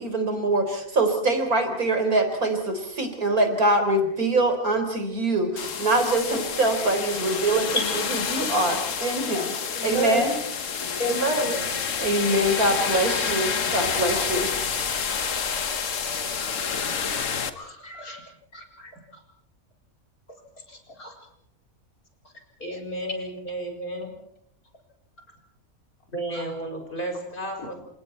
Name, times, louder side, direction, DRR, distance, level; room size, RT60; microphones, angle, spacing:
voice 1, 0.0-9.5 9.8-10.3 12.0-14.5, right 2 dB, 85° right, 6 dB, 4.5 m, -24 dB
sound 1, 5.6-17.5, left 6 dB, 60° left, 1.6 m, -28 dB
voice 2, 9.8-10.2 11.0-11.6 16.0-16.8 17.6-18.2 21.0-21.1, right 2 dB, 90° left, 2 dB, 5.0 m, -29 dB
voice 3, 22.6-24.1 26.1-27.8, right 1 dB, 35° left, 3 dB, 5.7 m, -32 dB
28.0 x 27.5 x 4.5 m, 0.71 s
omnidirectional pair, 1.5 m